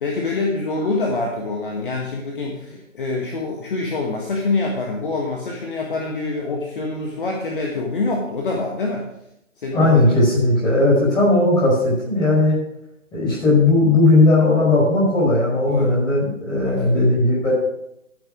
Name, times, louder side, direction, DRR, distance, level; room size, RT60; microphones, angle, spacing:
voice 1, 0.0-9.1 9.6-9.9 15.7-15.9 16.6-17.1, left 3 dB, 40° left, -1 dB, 1.7 m, -25 dB
voice 2, 9.7-12.6 13.1-17.5, left 2 dB, 10° left, -6 dB, 5.3 m, -17 dB
14.5 x 6.9 x 5.1 m, 0.80 s
figure-of-eight pair, 145°, 40 cm